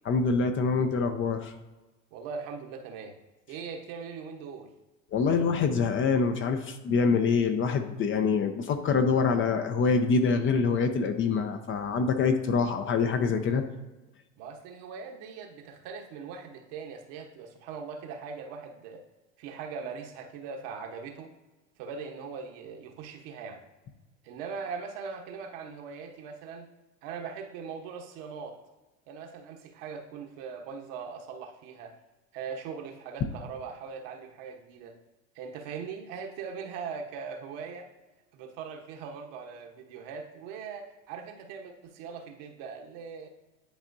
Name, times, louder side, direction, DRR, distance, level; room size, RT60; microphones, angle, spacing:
voice 1, 0.1-1.5 5.1-13.6, left 5 dB, 30° left, 7 dB, 0.7 m, -25 dB
voice 2, 2.1-3.1 3.5-4.7 14.4-19.0 19.4-21.3 21.8-23.6 24.2-26.7 27.0-28.6 29.1-31.9 32.3-35.0 35.3-37.9 38.3-43.3, right 5 dB, 55° right, 3 dB, 1.2 m, -40 dB
10.5 x 4.2 x 2.7 m, 1.1 s
hypercardioid pair, 90°, 39 cm